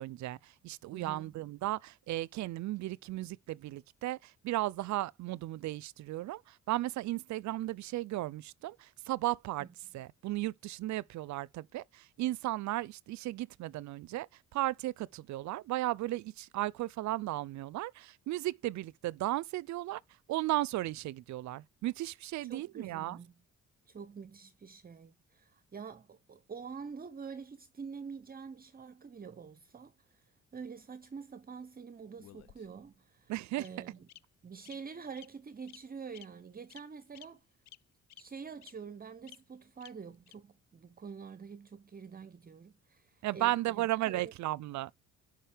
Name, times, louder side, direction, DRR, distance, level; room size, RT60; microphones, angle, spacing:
voice 1, 0.0-9.7 9.9-20.0 20.3-23.2 33.3-33.7 43.2-45.0, right 16 dB, 70° right, 0.5 m, -35 dB
voice 2, 0.9-1.4 9.6-9.7 22.5-23.3 23.9-30.2 30.5-34.1 34.4-37.4 38.2-44.3, right 6 dB, 30° right, 0.7 m, -46 dB
Bird vocalization bird call bird song, 32.2-32.9 33.6-33.7 34.1-34.2 34.6-34.7 35.1-35.3 35.7-35.8 36.1-36.2 36.7-36.8 37.1-37.2 37.7-37.8 38.1-38.2 38.6-38.7 39.3-39.4 39.8-39.9 40.3-40.4, left 14 dB, 65° left, 0.5 m, -53 dB
10.0 x 5.1 x 3.4 m
cardioid pair, 90°, 30 cm